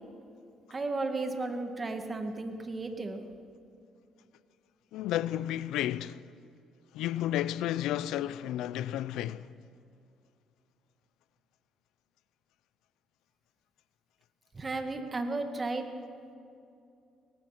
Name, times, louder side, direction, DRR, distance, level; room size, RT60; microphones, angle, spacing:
voice 1, 0.7-3.2 14.5-15.9, right 3 dB, 25° right, 2.2 m, -34 dB
voice 2, 4.9-6.2 6.9-9.5, left 12 dB, 85° left, 0.6 m, -32 dB
22.5 x 19.0 x 6.1 m
cardioid pair, 105°, 0 cm